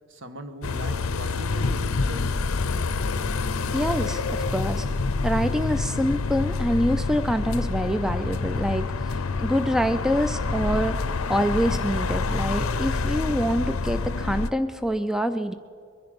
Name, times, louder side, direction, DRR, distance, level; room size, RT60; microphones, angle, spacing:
voice 1, 0.0-2.4, right 1 dB, 65° right, 8 dB, 1.3 m, -40 dB
sound 1, 0.6-14.5, left 3 dB, 90° left, 0.6 m, -27 dB
voice 2, 3.7-4.9 5.2-11.0 11.3-15.5, equal, ahead, 10 dB, 0.3 m, -26 dB
22.5 x 10.5 x 5.2 m, 2.4 s
head